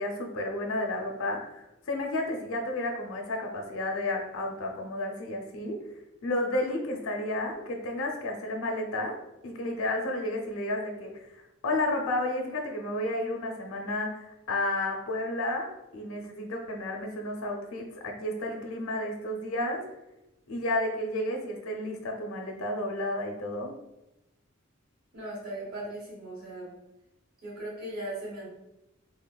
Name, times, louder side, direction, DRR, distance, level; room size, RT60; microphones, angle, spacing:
voice 1, 0.0-5.8 6.2-9.1 9.4-11.3 11.6-19.8 20.5-23.7, left 1 dB, 90° left, 2 dB, 0.5 m, -32 dB
voice 2, 25.1-26.7 27.4-28.5, right 1 dB, 55° right, -6 dB, 0.9 m, -38 dB
3.4 x 2.0 x 2.2 m, 0.91 s
head